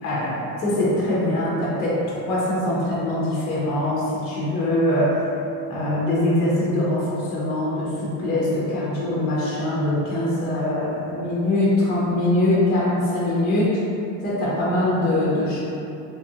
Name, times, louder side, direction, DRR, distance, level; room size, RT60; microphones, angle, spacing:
voice 1, 0.0-5.3 5.7-13.8 14.2-15.6, left 1 dB, 25° left, -7 dB, 0.5 m, -22 dB
3.0 x 2.4 x 2.7 m, 2.7 s
cardioid pair, 150°, 39 cm